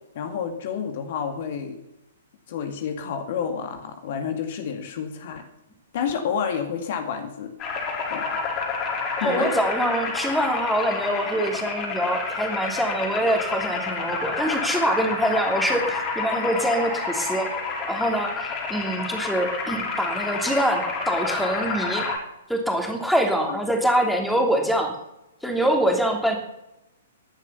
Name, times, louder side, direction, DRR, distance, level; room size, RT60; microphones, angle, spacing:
voice 1, 0.2-1.8 2.5-5.5 5.9-7.5 8.1-8.2 9.2-9.5 23.5-23.6, left 7 dB, 45° left, 6 dB, 2.1 m, -29 dB
sound 1, 7.6-22.2, left 4 dB, 30° left, 4.6 m, -29 dB
voice 2, 9.2-17.5 17.9-22.1 22.5-24.9 25.4-26.4, right 1 dB, ahead, 2 dB, 3.0 m, -24 dB
15.5 x 11.5 x 7.1 m, 0.90 s
figure-of-eight pair, 115°, 0 cm